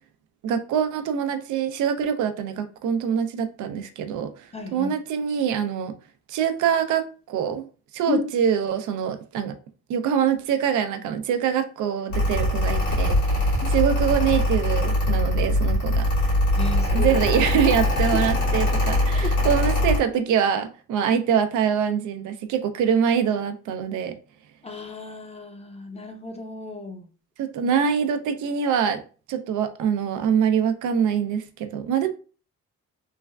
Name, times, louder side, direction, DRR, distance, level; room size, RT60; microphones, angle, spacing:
voice 1, 0.4-5.9 6.3-7.7 7.9-9.5 9.9-16.1 16.9-24.1 27.4-29.0 29.3-32.1, right 8 dB, 80° right, 0.5 m, -24 dB
voice 2, 4.5-4.9 8.1-8.2 13.6-13.7 16.6-17.2 19.1-19.3 24.6-27.1, left 4 dB, 20° left, 0.5 m, -33 dB
Mechanical fan, 12.1-20.0, left 1 dB, 80° left, 1.4 m, -22 dB
3.2 x 2.3 x 2.2 m
cardioid pair, 90°, 30 cm